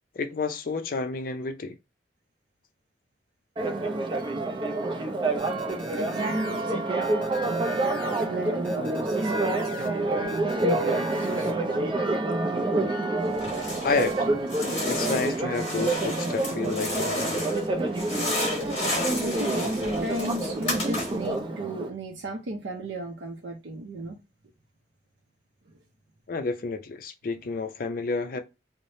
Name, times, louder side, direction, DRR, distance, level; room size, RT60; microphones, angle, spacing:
voice 1, 0.2-1.8 13.8-14.4 14.9-17.6 26.3-28.4, left 4 dB, 50° left, 0.4 m, -30 dB
Church bell, 3.6-21.9, right 2 dB, 25° right, 0.4 m, -28 dB
sound 1, 5.4-6.6 7.0-8.2 8.6-9.9 10.3-11.5, right 2 dB, 5° left, 0.7 m, -42 dB
voice 2, 6.0-12.0 19.2-24.2, right 1 dB, 80° right, 0.5 m, -36 dB
sound 2, 13.3-14.2 14.5-17.7 17.9-21.3, left 1 dB, 30° left, 1.3 m, -32 dB
3.2 x 2.0 x 2.6 m
head